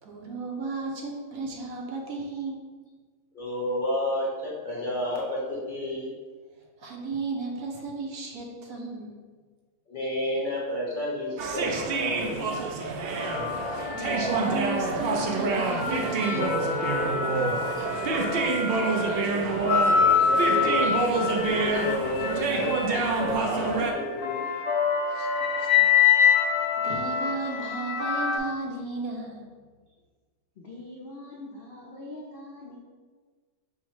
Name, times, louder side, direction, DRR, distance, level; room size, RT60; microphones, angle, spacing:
voice 1, 0.0-2.6 6.8-9.2 13.8-16.7 25.1-25.9 26.5-29.5, right 3 dB, 70° right, -1 dB, 1.1 m, -35 dB
voice 2, 3.3-6.1 9.9-12.4 17.7-17.9 19.9-20.9 21.4-24.5, left 1 dB, 35° left, -5 dB, 1.0 m, -31 dB
sound 1, 11.4-23.9, right 4 dB, 90° right, 0.5 m, -27 dB
sound 2, 13.2-15.1 15.6-28.4, left 6 dB, 75° left, 1.0 m, -26 dB
voice 3, 30.6-32.8, left 2 dB, 60° left, -3 dB, 0.6 m, -43 dB
5.6 x 2.1 x 4.6 m, 1.5 s
omnidirectional pair, 1.6 m